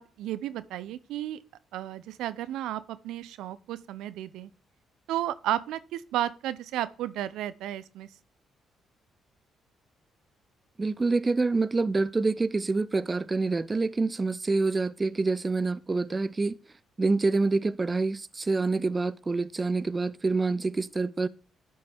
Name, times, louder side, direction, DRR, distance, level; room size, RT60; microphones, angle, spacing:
voice 1, 0.0-1.4 1.7-4.5 5.1-8.1, right 12 dB, 90° right, 0.6 m, -33 dB
voice 2, 10.8-16.6 17.0-21.3, right 3 dB, 25° right, 0.4 m, -26 dB
11.0 x 5.4 x 3.5 m
cardioid pair, 90°, 0 cm